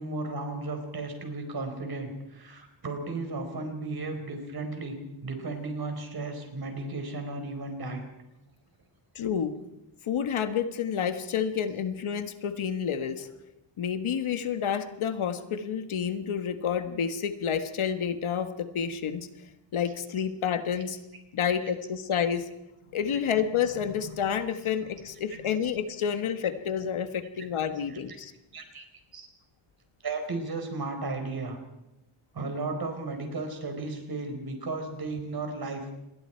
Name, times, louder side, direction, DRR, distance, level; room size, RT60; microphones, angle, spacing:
voice 1, 0.0-4.9 5.2-8.1 20.7-20.8 21.4-21.7 23.1-23.2 26.2-26.3 27.9-28.2 28.5-28.8 29.1-29.3 30.0-31.6 32.3-35.9, right 3 dB, 45° right, 5 dB, 4.5 m, -35 dB
voice 2, 9.1-9.5 10.1-13.3 13.8-19.3 19.7-21.0 21.3-22.5 22.9-28.3, left 8 dB, 75° left, 8 dB, 1.7 m, -29 dB
27.5 x 21.5 x 4.6 m, 0.92 s
wide cardioid pair, 165°, 49 cm